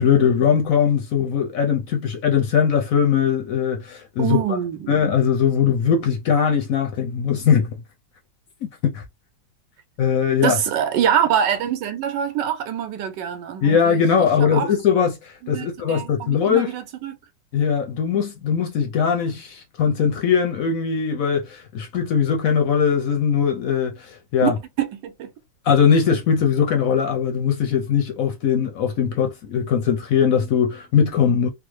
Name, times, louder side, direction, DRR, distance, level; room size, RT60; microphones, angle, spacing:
voice 1, 0.0-4.4 4.9-7.7 8.6-9.0 10.0-10.6 13.6-16.7 17.5-24.6 25.6-31.5, left 7 dB, 70° left, 0.8 m, -20 dB
voice 2, 4.2-4.9 10.4-14.7 15.4-17.2 24.4-24.5 24.8-25.3, right 9 dB, 75° right, 1.3 m, -24 dB
3.4 x 2.0 x 3.1 m
omnidirectional pair, 2.0 m